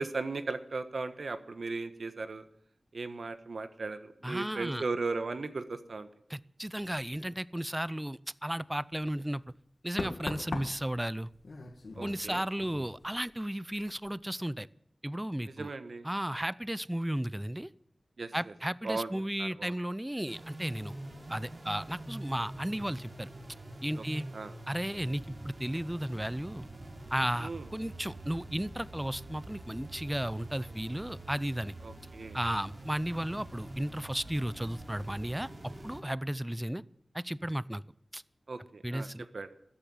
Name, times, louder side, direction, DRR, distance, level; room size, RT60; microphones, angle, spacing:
voice 1, 0.0-2.4 2.9-6.1 11.9-12.4 15.4-16.1 18.2-18.5 18.8-19.1 19.4-19.7 24.0-24.1 24.3-24.5 27.4-27.7 31.8-32.4 38.5-39.1 39.3-39.5, right 3 dB, 75° right, 10 dB, 1.3 m, -37 dB
voice 2, 4.2-4.8 6.3-9.4 9.8-11.3 12.0-14.7 15.0-15.7 16.0-17.7 18.3-20.9 21.3-23.3 23.8-24.2 24.7-26.7 27.1-31.7 32.3-36.8 37.1-37.8 38.1-38.2 38.8-39.3, right 1 dB, 10° right, 20 dB, 0.5 m, -34 dB
Knock, 8.9-9.1 10.0-13.5 13.7-14.1, left 3 dB, 75° left, 1.9 m, -41 dB
sound 1, 20.3-36.0, right 1 dB, 50° right, 4.1 m, -45 dB
13.5 x 10.0 x 9.6 m, 0.67 s
wide cardioid pair, 55°, 0 cm